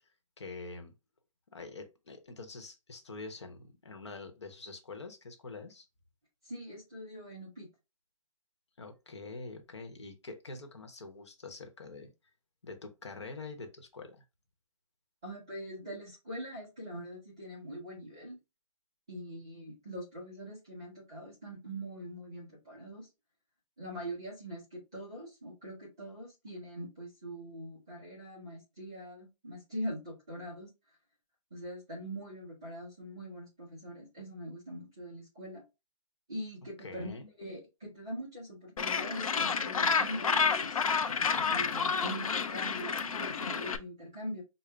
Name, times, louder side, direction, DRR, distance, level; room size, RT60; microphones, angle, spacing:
voice 1, 0.4-0.9 1.5-5.8 8.8-12.1 12.6-14.2 36.8-37.3, left 3 dB, 50° left, 0.9 m, -45 dB
voice 2, 6.4-7.7 15.2-18.4 19.1-23.1 23.8-30.7 31.5-35.6 36.3-40.8 41.5-44.4, equal, 5° right, 0.4 m, -43 dB
Gull seagull, 38.8-43.8, left 5 dB, 75° left, 0.6 m, -30 dB
5.1 x 2.1 x 3.2 m
hypercardioid pair, 180°, 18 cm